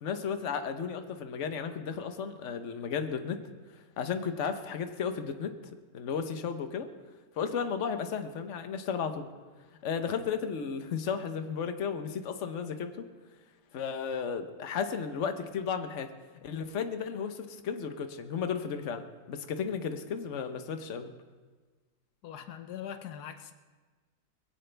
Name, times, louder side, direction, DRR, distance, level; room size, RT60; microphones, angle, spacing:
voice 1, 0.0-3.4 4.0-5.5 5.9-6.9 7.4-9.3 9.8-13.0 13.7-16.1 16.4-19.0 19.3-21.1, left 6 dB, 55° left, 8 dB, 1.3 m, -34 dB
voice 2, 22.2-23.5, left 9 dB, 85° left, 9 dB, 1.4 m, -42 dB
21.5 x 16.5 x 3.4 m, 1.4 s
omnidirectional pair, 1.6 m